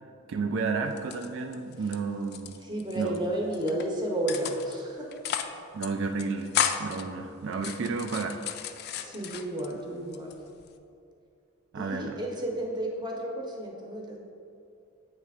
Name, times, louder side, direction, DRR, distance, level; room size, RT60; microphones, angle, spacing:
voice 1, 0.3-2.6 3.0-3.1 5.7-6.5 6.8-8.4 11.7-12.2, right 4 dB, 60° right, 4 dB, 0.3 m, -31 dB
sound 1, 0.9-2.0 2.2-3.2 3.5-3.8 4.3-4.8 5.1-5.6 5.8-5.9 6.2-7.0 7.5-9.7 10.1-10.8, left 9 dB, 50° left, 0.3 m, -33 dB
voice 2, 2.6-5.1 9.0-10.3 11.7-14.2, right 1 dB, 20° right, 0 dB, 0.8 m, -32 dB
8.0 x 3.3 x 4.9 m, 2.5 s
head